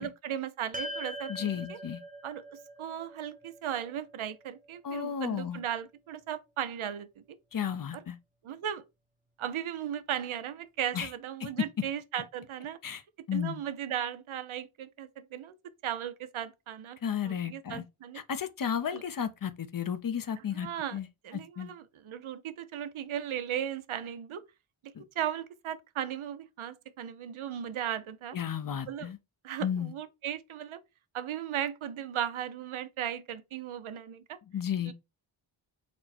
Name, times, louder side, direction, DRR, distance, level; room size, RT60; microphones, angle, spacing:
voice 1, 0.0-1.8 2.2-7.1 8.4-8.8 9.4-12.8 13.3-15.5 15.8-17.0 17.2-18.2 18.9-19.0 20.5-21.0 21.2-24.4 25.0-28.4 28.9-29.1 29.4-30.8 31.1-34.4 34.9-35.0, right 10 dB, 75° right, 0.6 m, -36 dB
sound 1, 0.7-5.2, right 1 dB, 15° right, 0.7 m, -43 dB
voice 2, 1.3-2.0 4.8-5.6 7.5-8.2 10.9-11.1 11.4-11.7 12.8-13.0 13.3-13.6 17.0-17.8 18.1-21.1 21.6-21.7 24.9-25.0 28.3-29.2 29.6-29.9 34.5-34.9, left 8 dB, 45° left, 0.5 m, -33 dB
4.3 x 2.0 x 4.2 m
wide cardioid pair, 70°, 49 cm